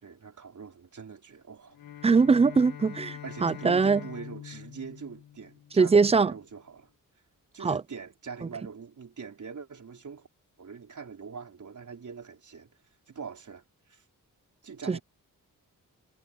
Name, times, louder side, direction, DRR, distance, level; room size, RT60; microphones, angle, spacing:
voice 1, 0.0-1.8 3.2-6.9 7.5-10.3 10.6-12.7 13.1-14.0 14.6-15.0, right 6 dB, 55° right, 4.2 m, -43 dB
Bowed string instrument, 1.7-6.1, left 10 dB, 90° left, 1.3 m, -44 dB
voice 2, 2.0-4.0 5.8-6.3 7.6-7.8 14.9-15.0, right 4 dB, 20° right, 0.4 m, -22 dB
wide cardioid pair, 115°, 35 cm